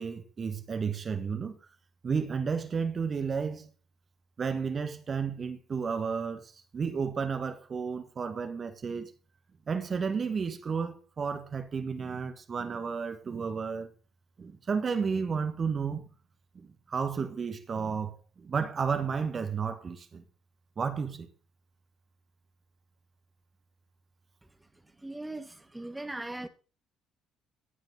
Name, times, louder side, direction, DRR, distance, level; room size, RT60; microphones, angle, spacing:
voice 1, 0.0-1.6 2.0-3.7 4.4-9.1 9.7-13.9 14.4-16.0 16.5-20.2 20.8-21.3, right 5 dB, 40° right, 1.6 m, -32 dB
voice 2, 25.0-26.5, right 2 dB, 10° right, 1.6 m, -39 dB
16.5 x 8.8 x 3.9 m
figure-of-eight pair, 50°, 0 cm